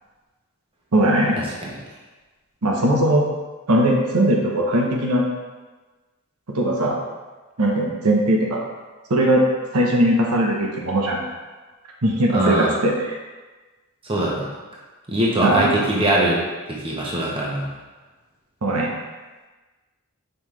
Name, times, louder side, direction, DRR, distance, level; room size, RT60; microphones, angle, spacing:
voice 1, 0.9-1.4 2.6-3.3 3.7-5.2 6.5-7.0 7.6-8.6 9.1-9.5 9.7-11.2 12.0-13.2 15.4-15.7 18.6-18.9, right 1 dB, 85° right, -1 dB, 1.0 m, -19 dB
voice 2, 12.3-12.7 14.0-14.5 15.1-16.4 16.7-17.7, right 1 dB, 25° right, -4 dB, 1.2 m, -21 dB
5.6 x 5.4 x 3.3 m, 1.3 s
head